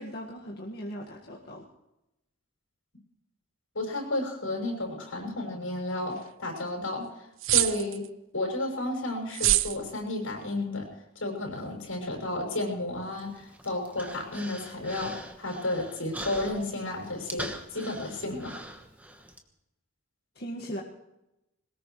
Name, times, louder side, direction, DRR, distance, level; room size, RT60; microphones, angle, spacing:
voice 1, 0.0-1.7 20.4-20.8, equal, 50° left, -3 dB, 1.8 m, -38 dB
voice 2, 3.7-7.1 7.5-8.1 8.3-10.9 11.2-18.5, left 2 dB, 80° left, 1 dB, 6.5 m, -32 dB
sound 1, 7.4-8.1 9.3-9.8, right 14 dB, 70° right, 0.6 m, -24 dB
Human voice, 13.1-19.4, right 1 dB, 5° right, 1.2 m, -42 dB
22.0 x 19.5 x 3.2 m, 0.91 s
head